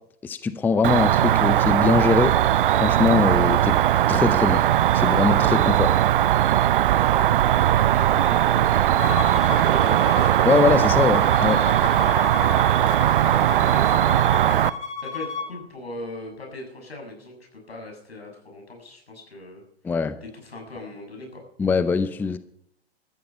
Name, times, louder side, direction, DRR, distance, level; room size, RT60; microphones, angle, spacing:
voice 1, 0.2-2.3 2.8-3.8 4.1-4.6 4.9-5.9 10.4-11.6 19.8-20.2 21.6-22.4, left 5 dB, 5° left, 14 dB, 0.5 m, -22 dB
Cricket, 0.8-14.7, right 12 dB, 55° right, 0.7 m, -19 dB
voice 2, 6.9-7.3 7.7-10.5 12.4-12.9 13.3-14.3 15.0-19.6 20.3-21.4, left 1 dB, 80° left, 2 dB, 7.0 m, -39 dB
Bowed string instrument, 9.0-15.5, left 5 dB, 20° left, 2.4 m, -32 dB
16.5 x 13.5 x 5.6 m, 0.71 s
figure-of-eight pair, 110°, 31 cm